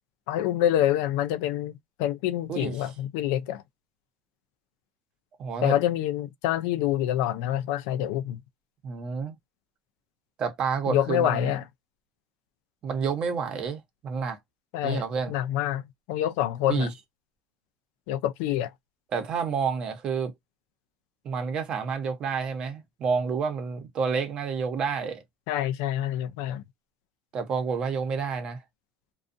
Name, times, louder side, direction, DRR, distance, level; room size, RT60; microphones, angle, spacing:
voice 1, 0.3-3.6 5.6-8.4 10.9-11.6 14.7-16.9 18.1-18.7 25.5-26.6, left 12 dB, 85° left, 0.4 m, -27 dB
voice 2, 5.4-5.7 8.8-9.3 10.4-11.5 12.8-14.4 14.8-15.3 16.7-16.9 19.1-20.3 21.2-25.2 27.3-28.6, right 5 dB, 45° right, 0.8 m, -29 dB
2.5 x 2.3 x 2.5 m
cardioid pair, 125°, 2 cm